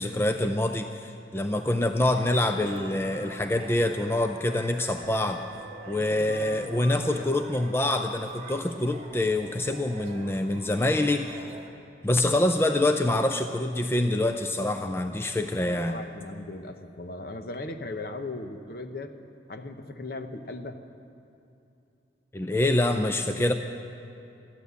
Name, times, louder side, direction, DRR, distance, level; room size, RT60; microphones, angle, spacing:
voice 1, 0.0-5.4 5.9-11.4 12.0-16.0 22.3-23.5, left 1 dB, 15° left, 6 dB, 0.4 m, -26 dB
sound 1, 2.0-11.7, right 2 dB, 35° right, 1.4 m, -45 dB
voice 2, 6.0-7.4 15.1-15.3 15.7-19.1 19.5-20.8, left 2 dB, 55° left, 8 dB, 0.8 m, -38 dB
14.0 x 11.5 x 8.2 m, 2.7 s
head